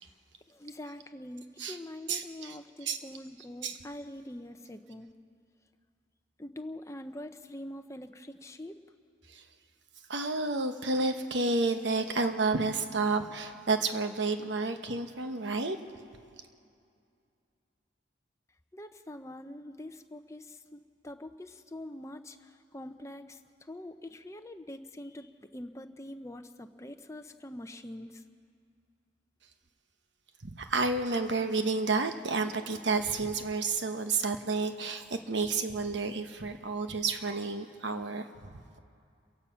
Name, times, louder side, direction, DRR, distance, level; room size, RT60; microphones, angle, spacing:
voice 1, 0.5-5.1 6.4-8.8 18.7-23.4 23.7-28.2, left 1 dB, 15° left, 7 dB, 0.6 m, -44 dB
voice 2, 2.1-3.0 3.6-3.8 10.1-15.8 30.4-38.8, right 3 dB, 70° right, 7 dB, 1.1 m, -30 dB
29.0 x 15.5 x 5.7 m, 2.4 s
head